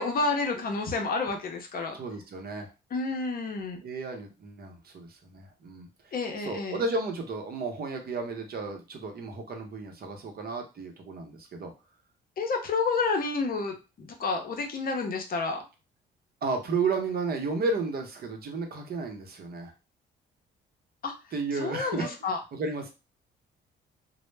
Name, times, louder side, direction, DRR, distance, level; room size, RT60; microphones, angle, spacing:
voice 1, 0.0-2.0 2.9-3.8 6.1-6.8 12.4-15.6 21.0-21.1 21.6-22.4, left 4 dB, 45° left, 3 dB, 0.6 m, -30 dB
voice 2, 1.9-2.7 3.8-11.7 16.4-19.7 21.3-22.9, right 3 dB, 50° right, 3 dB, 0.7 m, -33 dB
2.0 x 2.0 x 3.2 m, 0.29 s
cardioid pair, 90°, 20 cm